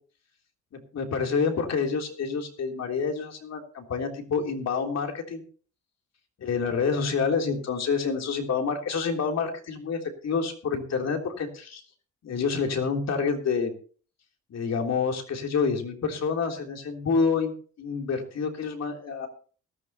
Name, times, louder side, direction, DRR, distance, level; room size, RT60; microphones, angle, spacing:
voice 1, 0.7-5.4 6.4-11.8 12.2-13.7 14.5-17.5 17.8-19.3, left 5 dB, 60° left, 3 dB, 3.3 m, -28 dB
19.0 x 13.0 x 2.9 m, 0.41 s
cardioid pair, 90°, 30 cm